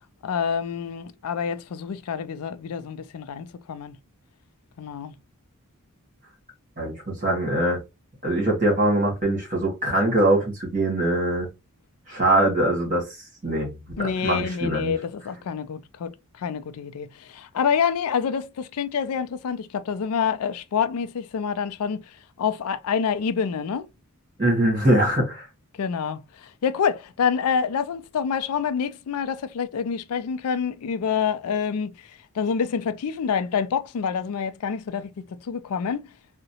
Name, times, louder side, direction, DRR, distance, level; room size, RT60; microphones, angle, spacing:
voice 1, 0.2-4.0 4.8-5.1 14.0-16.1 16.4-22.0 22.4-23.9 25.8-31.9 32.4-36.1, left 6 dB, 85° left, 0.4 m, -27 dB
voice 2, 6.8-7.8 8.2-11.5 12.1-13.1 13.4-14.9 24.4-25.5, right 1 dB, 35° right, 1.8 m, -22 dB
3.7 x 2.1 x 2.8 m
head